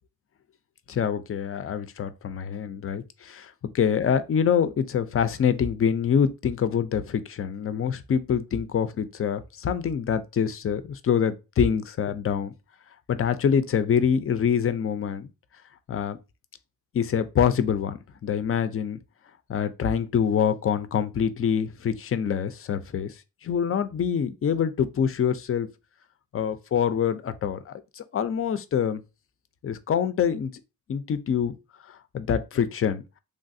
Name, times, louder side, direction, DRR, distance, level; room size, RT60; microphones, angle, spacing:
voice 1, 0.9-12.5 13.1-15.3 15.9-16.2 16.9-19.0 19.5-23.1 23.4-25.7 26.3-29.0 29.6-30.5 30.9-31.6 32.1-33.0, left 7 dB, 40° left, 0.4 m, -25 dB
3.2 x 2.3 x 2.6 m
cardioid pair, 65°, 36 cm